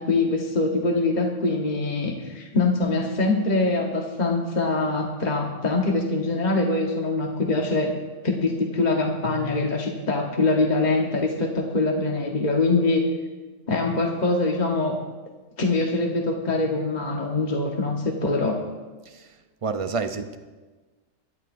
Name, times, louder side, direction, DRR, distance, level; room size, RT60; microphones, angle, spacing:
voice 1, 0.0-7.9 8.2-13.0 13.7-15.0 15.6-18.6, left 3 dB, 35° left, 0 dB, 1.2 m, -23 dB
voice 2, 19.0-20.4, right 4 dB, 35° right, 8 dB, 0.6 m, -30 dB
22.5 x 12.5 x 2.6 m, 1.3 s
omnidirectional pair, 1.3 m